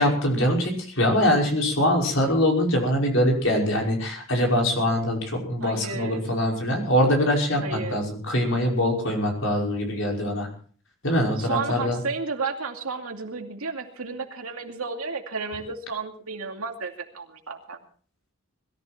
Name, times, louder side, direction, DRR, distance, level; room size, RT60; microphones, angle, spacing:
voice 1, 0.0-10.5 11.0-12.0, left 1 dB, 65° left, 1 dB, 5.6 m, -23 dB
voice 2, 5.6-6.3 7.6-8.0 11.4-17.8, right 4 dB, 85° right, 4 dB, 2.5 m, -32 dB
21.5 x 14.0 x 4.4 m, 0.43 s
head